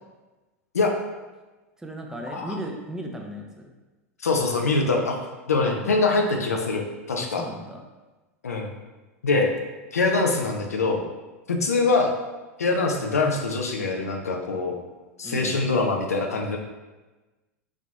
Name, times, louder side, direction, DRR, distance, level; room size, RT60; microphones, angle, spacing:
voice 1, 1.8-3.7 5.6-5.9 7.2-7.8 15.2-15.6, equal, 5° right, 1 dB, 0.5 m, -36 dB
voice 2, 4.2-5.2 5.5-7.4 8.4-8.7 9.2-9.5 9.9-11.0 11.5-12.1 12.6-14.7 15.2-16.6, left 3 dB, 85° left, 2 dB, 0.5 m, -23 dB
4.1 x 2.9 x 2.3 m, 1.2 s
hypercardioid pair, 90°, 8 cm